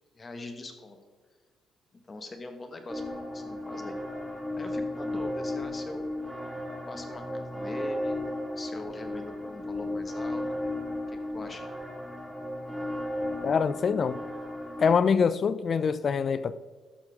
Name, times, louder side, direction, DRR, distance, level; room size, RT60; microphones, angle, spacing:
voice 1, 0.2-1.0 2.1-3.0 3.3-3.9 4.6-6.1 6.9-8.1 8.6-10.4 11.1-11.7, left 3 dB, 30° left, 1.3 m, -42 dB
sound 1, 2.9-15.0, left 1 dB, ahead, 1.8 m, -34 dB
voice 2, 13.4-14.2 14.8-16.5, left 6 dB, 50° left, 0.3 m, -24 dB
13.0 x 6.8 x 3.6 m
cardioid pair, 90°, 0 cm